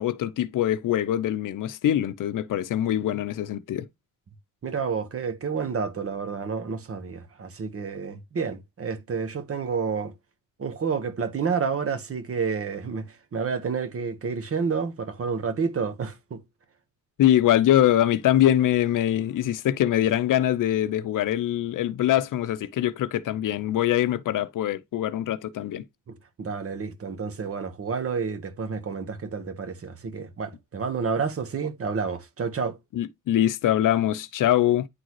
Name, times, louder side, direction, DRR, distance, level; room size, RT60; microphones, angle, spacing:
voice 1, 0.0-3.9 17.2-25.8 32.9-34.9, left 12 dB, 70° left, 0.7 m, -23 dB
voice 2, 4.6-10.1 10.6-16.4 26.1-32.8, right 5 dB, 45° right, 1.3 m, -30 dB
9.9 x 3.8 x 3.1 m
cardioid pair, 100°, 33 cm